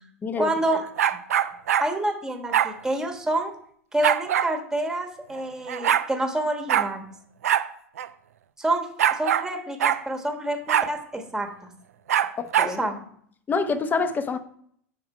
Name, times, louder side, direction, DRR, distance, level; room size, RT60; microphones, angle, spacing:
voice 1, 0.4-0.9 1.8-3.5 3.9-7.1 8.6-11.7 12.6-13.1, right 1 dB, 5° right, 1.1 m, -28 dB
sound 1, 1.0-1.9 2.5-2.7 4.0-4.5 5.4-5.5 5.7-6.1 6.7-6.9 7.4-7.7 8.0-8.1 9.0-9.5 9.8-10.0 10.7-10.9 12.1-12.7, right 10 dB, 75° right, 0.4 m, -22 dB
voice 2, 12.4-12.8 13.5-14.4, left 4 dB, 20° left, 0.7 m, -26 dB
6.0 x 4.9 x 5.4 m
hypercardioid pair, 90°, 8 cm